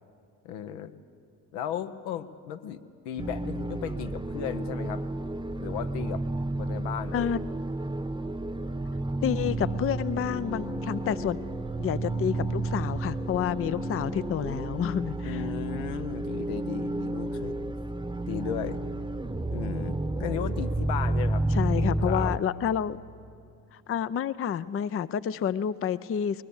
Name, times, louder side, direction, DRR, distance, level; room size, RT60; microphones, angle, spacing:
voice 1, 0.4-0.9 1.5-5.0 5.6-6.2 6.6-7.4 15.2-17.7 18.3-18.8 19.5-21.4 21.7-22.3, left 9 dB, 75° left, 8 dB, 1.0 m, -35 dB
sound 1, 3.2-22.4, right 2 dB, 10° right, 1.0 m, -31 dB
voice 2, 9.2-11.4 11.8-15.4 21.5-23.0 23.7-26.4, left 9 dB, 30° left, 16 dB, 0.5 m, -29 dB
21.0 x 20.5 x 7.2 m, 2.5 s
hypercardioid pair, 50°, 46 cm